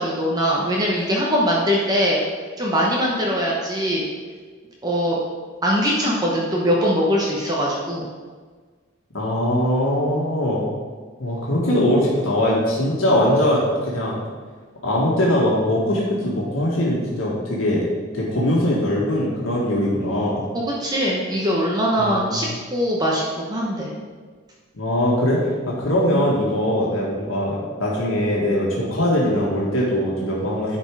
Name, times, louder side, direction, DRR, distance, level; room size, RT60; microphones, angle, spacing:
voice 1, 0.0-2.2 2.6-4.1 4.8-5.2 5.6-8.0 20.5-23.9, equal, 20° right, -3 dB, 1.0 m, -21 dB
voice 2, 9.1-10.7 11.2-14.2 14.8-17.9 18.1-20.4 22.0-22.6 24.7-30.8, left 1 dB, 90° left, -5 dB, 1.8 m, -21 dB
10.5 x 4.5 x 4.8 m, 1.5 s
head